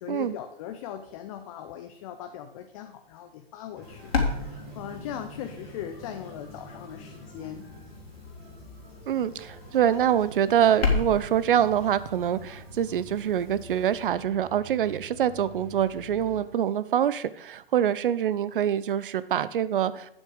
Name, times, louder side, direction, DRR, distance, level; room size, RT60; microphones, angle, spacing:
voice 1, 0.0-7.7, left 10 dB, 35° left, 7 dB, 0.7 m, -39 dB
sound 1, 3.7-16.4, equal, 30° right, 3.4 m, -48 dB
sound 2, 3.8-14.1, left 4 dB, 75° left, 2.4 m, -35 dB
voice 2, 9.1-20.1, right 10 dB, 60° right, 16 dB, 0.7 m, -25 dB
8.7 x 7.5 x 4.9 m, 0.77 s
hypercardioid pair, 125°, 30 cm